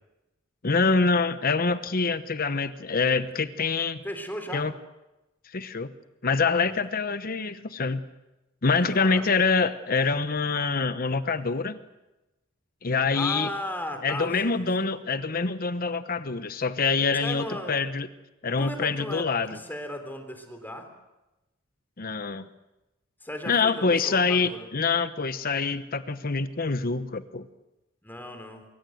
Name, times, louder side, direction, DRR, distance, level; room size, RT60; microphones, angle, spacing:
voice 1, 0.6-4.0 4.5-4.7 5.5-5.9 6.2-8.0 8.6-11.8 12.8-13.5 14.0-18.1 18.4-19.6 22.0-22.5 23.5-27.5, left 4 dB, 45° left, 12 dB, 1.0 m, -25 dB
voice 2, 4.0-4.7 6.7-6.8 8.7-9.3 13.1-14.9 17.1-17.8 18.6-20.9 23.2-24.7 28.0-28.6, left 1 dB, 10° left, 6 dB, 3.5 m, -36 dB
24.0 x 24.0 x 7.8 m, 0.98 s
head